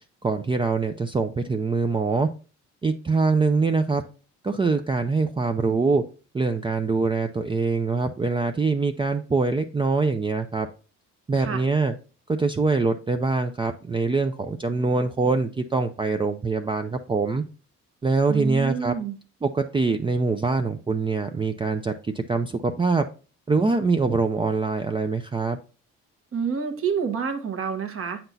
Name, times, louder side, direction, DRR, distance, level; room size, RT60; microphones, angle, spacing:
voice 1, 0.2-2.3 2.8-4.0 4.4-6.0 6.3-10.7 11.3-12.0 12.3-17.4 18.0-18.9 19.4-23.1 23.5-25.6, right 4 dB, 15° right, 6 dB, 0.4 m, -24 dB
voice 2, 18.3-19.2 26.3-28.2, right 6 dB, 45° right, 7 dB, 1.2 m, -28 dB
7.9 x 5.8 x 2.7 m, 0.37 s
cardioid pair, 90°, 30 cm